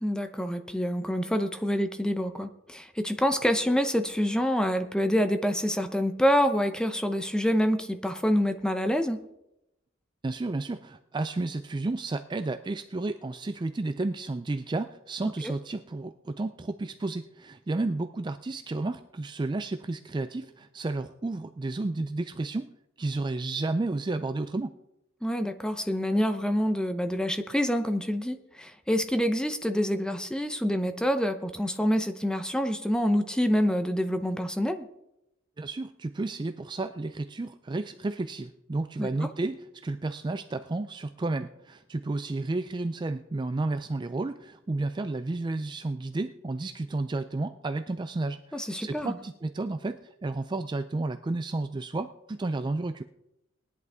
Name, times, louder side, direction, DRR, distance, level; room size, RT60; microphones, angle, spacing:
voice 1, 0.0-9.2 15.4-15.5 25.2-34.9 39.0-39.3 48.5-49.2, equal, 5° left, 8 dB, 0.7 m, -27 dB
voice 2, 10.2-24.7 35.6-53.0, right 2 dB, 20° right, 10 dB, 0.4 m, -32 dB
19.5 x 10.5 x 3.6 m, 0.86 s
head